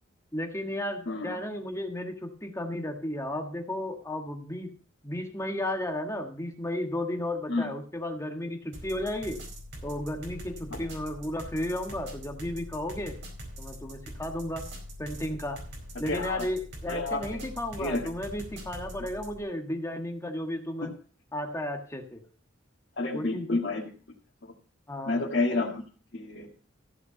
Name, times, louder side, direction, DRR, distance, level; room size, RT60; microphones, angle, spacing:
voice 1, 0.3-4.7 5.0-9.4 9.8-13.2 13.6-14.6 15.0-15.6 16.0-20.9 21.3-22.2 23.1-23.6 24.9-25.3, left 1 dB, 15° left, 4 dB, 1.4 m, -34 dB
voice 2, 1.1-1.4 7.5-7.7 10.7-10.8 16.1-16.4 16.9-17.2 17.8-18.0 23.0-23.9 25.1-25.8 26.1-26.5, left 2 dB, 60° left, -3 dB, 1.9 m, -29 dB
sound 1, 8.7-19.4, equal, 60° right, 4.7 m, -43 dB
15.0 x 5.7 x 6.7 m, 0.39 s
head